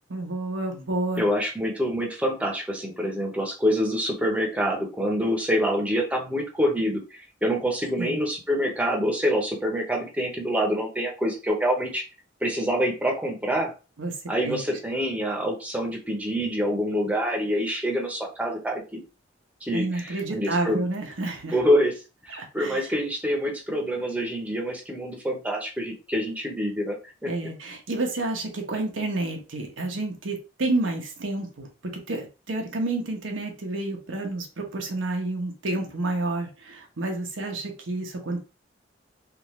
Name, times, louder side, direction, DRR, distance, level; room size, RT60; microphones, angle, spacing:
voice 1, 0.1-1.2 8.0-8.2 14.0-14.1 14.4-14.6 19.7-21.6 22.3-22.9 27.3-38.4, right 2 dB, 90° right, 2 dB, 0.9 m, -30 dB
voice 2, 1.2-12.0 12.4-13.7 14.3-19.0 19.6-20.8 21.5-21.9 22.3-27.0 27.2-27.3, equal, 5° right, 1 dB, 0.8 m, -26 dB
3.6 x 2.5 x 3.0 m, 0.31 s
head